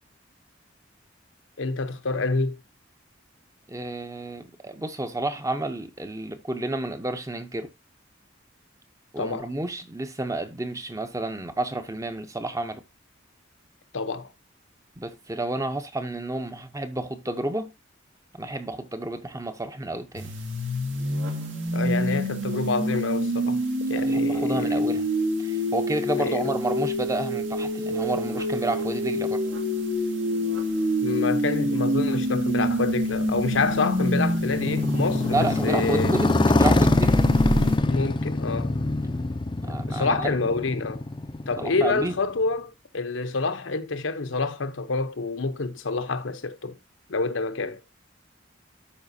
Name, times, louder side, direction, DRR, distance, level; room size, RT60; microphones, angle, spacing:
voice 1, 1.6-2.6 9.2-9.5 13.9-14.3 21.7-23.6 23.9-24.8 26.2-26.5 31.0-36.2 37.9-38.8 39.9-41.0 41.5-46.8 47.1-47.8, left 3 dB, 85° left, 0.9 m, -27 dB
voice 2, 3.7-7.7 9.1-12.8 15.0-17.7 18.3-20.3 24.0-25.1 25.4-29.4 35.3-37.2 39.6-40.3 41.6-42.2, right 2 dB, 15° right, 0.8 m, -30 dB
sound 1, 20.1-37.8, equal, 75° right, 2.4 m, -26 dB
Motorcycle, 32.4-42.3, left 2 dB, 25° left, 0.5 m, -25 dB
12.5 x 5.1 x 2.7 m
head